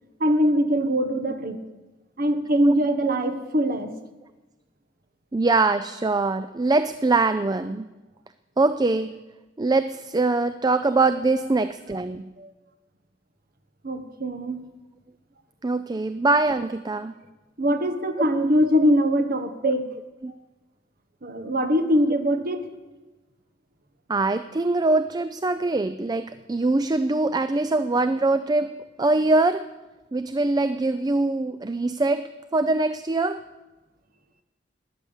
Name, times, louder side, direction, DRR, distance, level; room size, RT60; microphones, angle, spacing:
voice 1, 0.2-1.6 2.2-3.9 12.4-12.5 13.8-14.6 17.6-19.9 21.2-22.6, equal, 50° right, 8 dB, 1.4 m, -22 dB
voice 2, 5.3-7.9 8.6-9.2 9.6-12.3 15.6-17.1 18.2-18.3 19.6-19.7 20.2-20.3 24.1-28.7 29.0-29.7 30.1-33.4, right 3 dB, 20° right, 11 dB, 0.4 m, -23 dB
20.0 x 9.5 x 7.3 m, 1.1 s
head